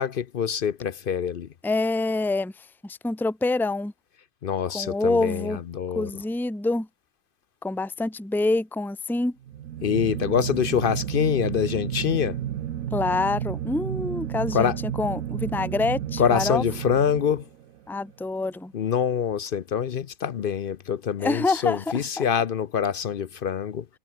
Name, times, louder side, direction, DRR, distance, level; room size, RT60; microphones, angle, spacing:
voice 1, 0.0-1.5 4.4-6.2 9.8-12.4 14.5-14.8 16.2-17.5 18.7-23.9, left 8 dB, 55° left, 0.6 m, -25 dB
voice 2, 1.6-3.9 4.7-5.6 5.9-6.9 7.6-9.4 12.9-16.6 17.9-18.7 21.2-21.8 22.2-22.3, left 2 dB, ahead, 1.3 m, -26 dB
sound 1, 9.4-17.8, right 11 dB, 70° right, 1.2 m, -32 dB
omnidirectional pair, 1.5 m